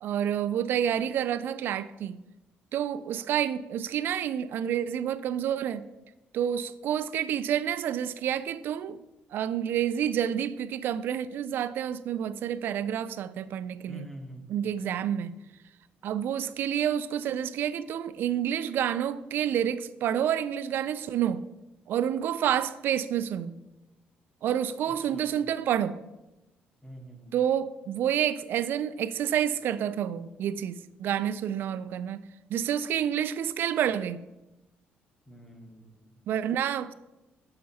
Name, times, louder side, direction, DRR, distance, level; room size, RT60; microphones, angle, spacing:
voice 1, 0.0-2.2 2.7-5.9 6.3-9.0 9.3-14.1 14.5-15.3 16.0-21.4 21.9-23.6 24.4-26.0 27.3-32.2 32.5-34.2 36.3-36.9, right 9 dB, 65° right, 14 dB, 0.3 m, -29 dB
voice 2, 13.9-14.5 24.8-25.3 26.8-27.3 35.3-36.2, right 1 dB, 10° left, 3 dB, 1.0 m, -46 dB
7.5 x 5.7 x 2.7 m, 0.98 s
cardioid pair, 110°, 4 cm